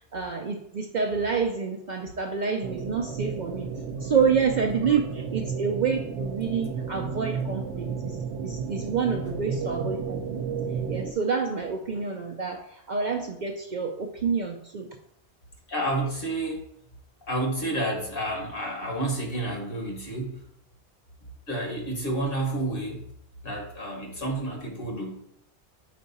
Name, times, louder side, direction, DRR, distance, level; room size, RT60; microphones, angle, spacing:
voice 1, 0.1-3.7 4.0-10.4 10.9-14.9, right 5 dB, 55° right, 3 dB, 0.5 m, -28 dB
sound 1, 2.6-11.1, right 5 dB, 80° right, 0.9 m, -32 dB
voice 2, 15.7-16.6 17.3-20.4 21.5-23.0 23.4-25.1, right 1 dB, 55° left, 1 dB, 1.5 m, -30 dB
5.1 x 4.7 x 4.1 m, 0.72 s
omnidirectional pair, 1.1 m